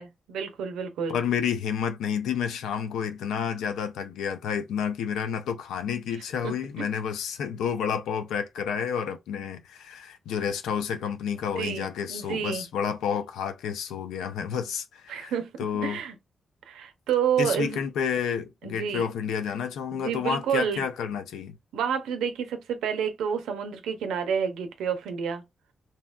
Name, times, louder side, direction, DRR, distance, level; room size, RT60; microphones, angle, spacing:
voice 1, 0.0-1.2 6.4-6.9 11.5-12.6 15.1-15.5 15.8-16.1 16.7-17.8 18.6-19.0 19.9-20.9 21.7-25.4, right 7 dB, 90° right, 0.5 m, -29 dB
voice 2, 1.1-15.3 15.6-16.0 17.4-21.6, left 7 dB, 90° left, 0.4 m, -30 dB
2.7 x 2.1 x 2.3 m
supercardioid pair, 55°, 0 cm